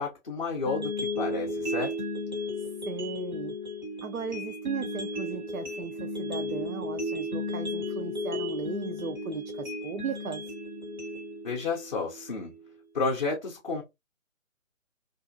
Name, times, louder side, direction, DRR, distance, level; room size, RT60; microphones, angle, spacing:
voice 1, 0.0-1.9 11.4-12.5 12.9-13.8, left 4 dB, 35° left, 0.5 m, -31 dB
sound 1, 0.7-12.7, left 1 dB, 35° right, 0.6 m, -34 dB
voice 2, 2.9-3.5 4.0-10.4, right 6 dB, 85° right, 0.6 m, -36 dB
2.6 x 2.3 x 2.4 m
figure-of-eight pair, 145°, 41 cm